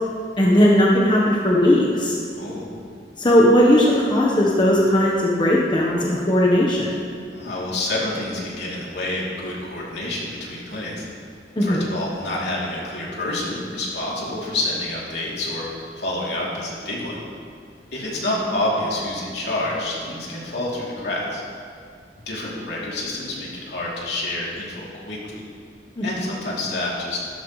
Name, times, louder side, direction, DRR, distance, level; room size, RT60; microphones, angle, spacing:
voice 1, 0.4-2.2 3.2-7.0 11.6-11.8 26.0-26.1, equal, 25° left, -4 dB, 1.1 m, -17 dB
voice 2, 2.3-2.7 7.3-11.0 11.6-15.6 16.0-17.1 17.9-21.4 22.3-25.4 26.0-27.2, left 1 dB, 70° left, -5 dB, 3.1 m, -28 dB
13.5 x 13.0 x 3.2 m, 2.3 s
head